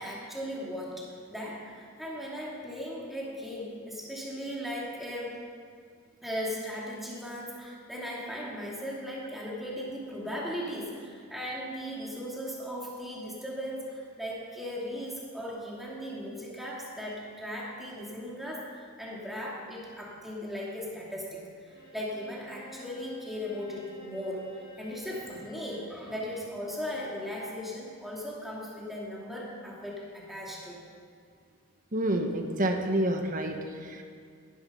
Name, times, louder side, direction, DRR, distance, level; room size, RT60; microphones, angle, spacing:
voice 1, 0.0-5.4 6.2-24.5 24.8-30.8, equal, ahead, -5 dB, 2.5 m, -37 dB
Bowed string instrument, 21.7-26.0, left 1 dB, 70° left, 4.4 m, -50 dB
voice 2, 31.9-34.0, right 1 dB, 40° right, 4 dB, 1.4 m, -28 dB
18.5 x 11.0 x 5.5 m, 2.2 s
head